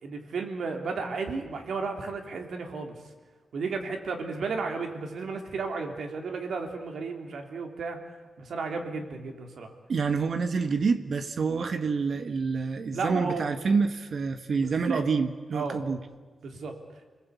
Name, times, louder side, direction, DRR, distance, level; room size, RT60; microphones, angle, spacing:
voice 1, 0.0-3.0 3.5-8.0 8.4-9.7 12.9-13.5 14.6-15.1 15.5-15.8 16.4-16.8, right 4 dB, 75° right, 4 dB, 3.7 m, -33 dB
voice 2, 9.9-16.0, right 5 dB, 55° right, 9 dB, 1.4 m, -27 dB
30.0 x 20.5 x 8.4 m, 1.3 s
wide cardioid pair, 145°, 0 cm